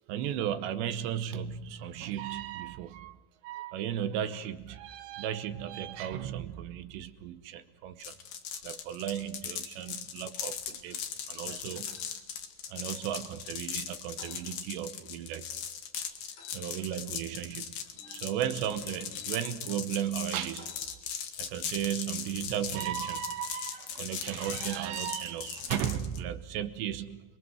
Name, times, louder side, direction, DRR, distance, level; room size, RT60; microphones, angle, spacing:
voice 1, 0.0-3.2 3.4-8.2 8.6-12.0 12.7-15.5 16.5-20.8 21.4-27.2, right 10 dB, 80° right, 10 dB, 3.2 m, -35 dB
sound 1, 8.0-26.2, left 8 dB, 60° left, 2.7 m, -39 dB
sound 2, 11.9-12.1 14.2-14.4 16.4-16.6 17.9-19.3 20.5-20.9, left 6 dB, 90° left, 7.4 m, -50 dB
29.5 x 23.0 x 6.3 m, 1.1 s
omnidirectional pair, 5.1 m